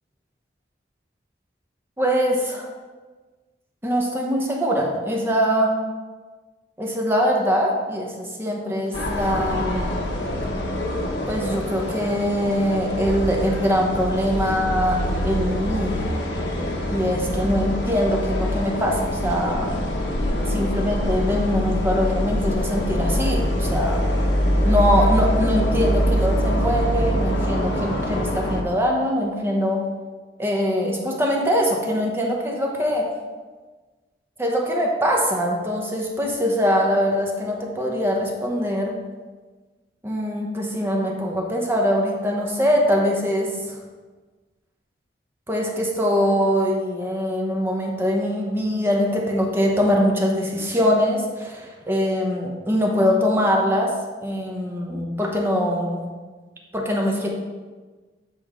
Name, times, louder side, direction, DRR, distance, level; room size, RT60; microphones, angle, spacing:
voice 1, 2.0-2.7 3.8-5.7 6.8-9.9 11.3-16.0 16.9-19.7 20.5-24.0 24.6-29.8 30.4-33.0 34.4-38.9 40.0-43.8 45.5-53.9 54.2-56.0 56.7-57.3, equal, 15° right, -1 dB, 0.9 m, -23 dB
sound 1, 8.9-28.6, equal, 75° left, 1.0 m, -24 dB
8.2 x 4.3 x 3.6 m, 1.3 s
head